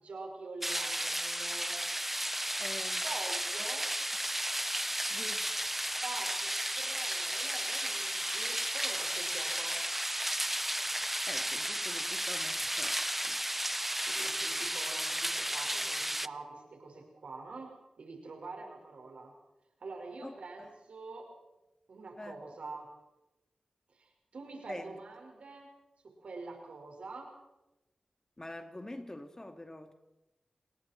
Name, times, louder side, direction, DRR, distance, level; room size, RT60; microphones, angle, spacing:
voice 1, 0.0-1.8 3.0-3.9 6.0-9.8 14.1-19.3 19.8-21.3 21.9-22.9 23.9-25.7 26.0-27.3, right 3 dB, 80° right, 2 dB, 5.6 m, -46 dB
sound 1, 0.6-16.3, right 1 dB, 10° right, 0.7 m, -33 dB
voice 2, 2.6-3.0 5.1-5.5 11.3-13.4 20.2-20.7 22.2-22.4 24.7-25.0 28.4-29.9, left 1 dB, 30° left, 7 dB, 2.4 m, -46 dB
29.5 x 20.0 x 4.6 m, 0.98 s
cardioid pair, 45°, 2 cm